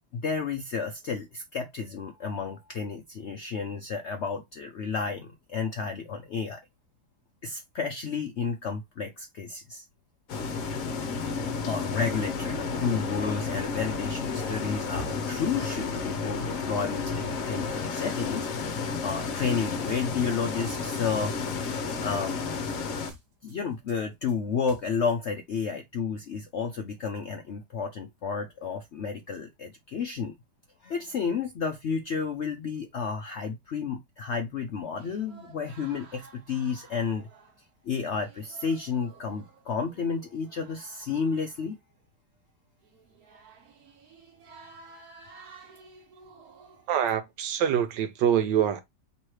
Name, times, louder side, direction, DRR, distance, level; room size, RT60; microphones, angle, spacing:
voice 1, 0.1-6.6 7.4-9.8 11.2-21.3 22.0-22.4 23.4-30.3 30.8-37.3 37.8-41.8, left 5 dB, 85° left, 0.6 m, -31 dB
sound 1, 10.3-23.1, left 4 dB, 60° left, 1.0 m, -32 dB
sound 2, 19.1-22.0 22.3-25.2, right 3 dB, 40° right, 0.9 m, -52 dB
sound 3, 35.0-37.7 38.1-42.1 42.8-47.0, right 4 dB, 60° right, 1.2 m, -53 dB
voice 2, 46.9-48.8, right 9 dB, 80° right, 1.2 m, -25 dB
3.1 x 3.1 x 4.6 m
omnidirectional pair, 2.0 m